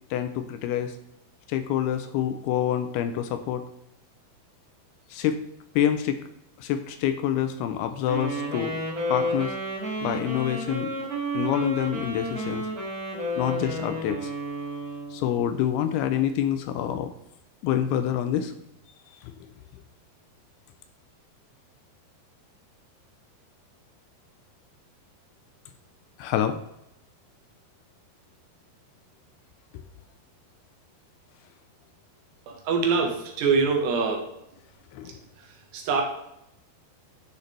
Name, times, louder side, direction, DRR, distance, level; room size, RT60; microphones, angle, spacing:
voice 1, 0.1-0.9 1.5-3.6 5.1-5.4 5.8-6.2 6.6-8.8 9.1-9.6 10.0-10.9 11.3-12.6 13.4-14.3 15.1-17.1 17.6-18.5 19.2-19.3 26.2-26.6 34.9-35.2, left 10 dB, 80° left, 9 dB, 2.4 m, -27 dB
Wind instrument woodwind instrument, 8.0-15.3, equal, 45° right, 1.1 m, -31 dB
voice 2, 32.5-34.2 35.7-36.0, right 5 dB, 85° right, 2 dB, 3.5 m, -24 dB
11.5 x 6.8 x 3.3 m, 0.84 s
omnidirectional pair, 4.8 m